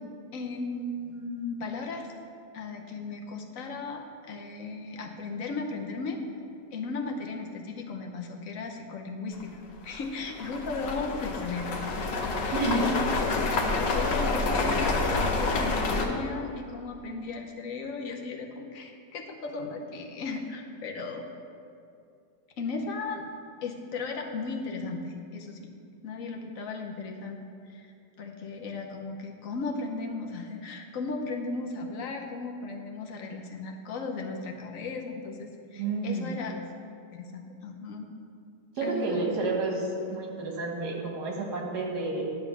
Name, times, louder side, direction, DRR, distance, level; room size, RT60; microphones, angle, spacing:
voice 1, 0.3-2.1 2.5-6.2 6.7-9.5 9.8-21.3 22.6-23.2 23.6-25.7 26.0-27.4 27.7-27.9 28.2-36.5 37.1-38.1 38.8-39.3, left 3 dB, 60° left, 1 dB, 1.1 m, -36 dB
sound 1, 9.3-9.4 9.9-16.1, left 3 dB, 80° left, 1.5 m, -28 dB
voice 2, 12.5-12.9 35.8-36.3 38.8-42.2, right 3 dB, 65° right, -1 dB, 2.0 m, -30 dB
10.5 x 3.7 x 6.9 m, 2.4 s
omnidirectional pair, 1.9 m